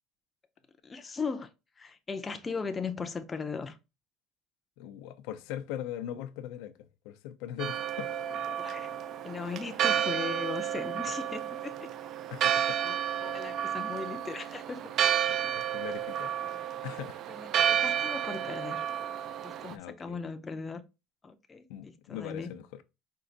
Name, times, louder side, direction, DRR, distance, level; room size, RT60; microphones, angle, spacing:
voice 1, 0.8-1.5 1.8-3.8 8.6-9.0 9.2-11.9 12.4-13.0 13.2-14.9 15.4-15.5 17.3-18.8 19.4-20.8 21.2-22.5, left 5 dB, 15° left, 0.5 m, -38 dB
voice 2, 4.8-6.7 7.0-8.4 12.3-13.2 15.4-16.3 16.8-17.2 17.5-17.8 19.7-20.2 21.7-22.7, left 11 dB, 80° left, 0.5 m, -41 dB
Church bell, 7.6-19.8, right 9 dB, 45° right, 0.3 m, -31 dB
4.6 x 2.4 x 3.8 m
cardioid pair, 155°, 0 cm